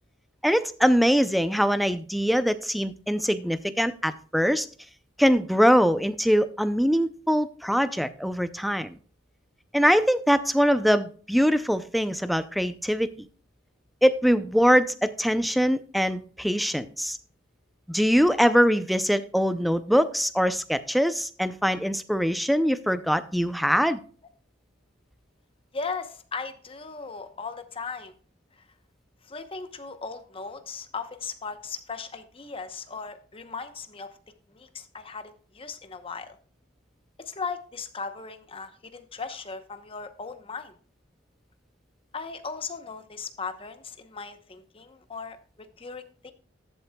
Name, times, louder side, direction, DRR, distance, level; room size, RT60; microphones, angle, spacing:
voice 1, 0.4-4.7 5.2-8.9 9.7-13.3 14.0-17.2 17.9-24.0, equal, ahead, 0.5 m, -23 dB
voice 2, 25.7-28.1 28.6-28.7 29.2-34.1 34.5-36.4 37.2-40.7 42.1-46.3, left 4 dB, 30° left, 0.9 m, -37 dB
14.0 x 8.0 x 2.3 m
head